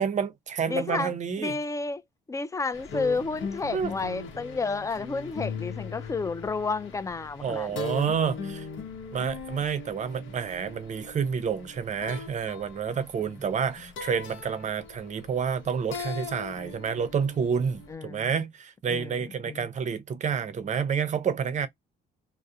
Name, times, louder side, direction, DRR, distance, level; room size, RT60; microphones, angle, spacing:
voice 1, 0.0-1.6 3.7-3.9 7.4-8.7 9.1-21.7, right 6 dB, 35° right, 0.5 m, -29 dB
voice 2, 0.7-1.1 1.4-2.0 2.3-7.7 13.2-13.3 17.9-18.3 18.9-19.2 19.4-19.7, left 4 dB, 15° left, 0.3 m, -31 dB
sound 1, 2.7-17.9, left 4 dB, 75° left, 0.8 m, -40 dB
2.3 x 2.0 x 2.6 m
cardioid pair, 90°, 20 cm